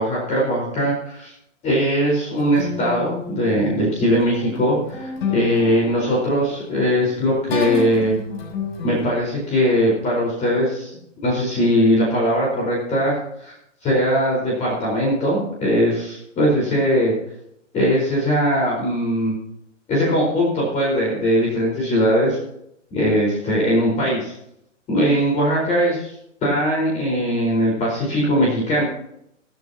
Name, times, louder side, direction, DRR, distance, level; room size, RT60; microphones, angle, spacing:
voice 1, 0.0-1.3 1.6-8.1 8.8-13.5 13.8-17.1 17.7-19.3 19.9-22.4 22.9-24.3 24.9-26.1 26.4-28.8, equal, 20° left, -3 dB, 4.4 m, -20 dB
sound 1, 2.4-9.1, left 4 dB, 50° left, 6.3 m, -31 dB
24.5 x 9.4 x 2.9 m, 0.75 s
hypercardioid pair, 150°, 38 cm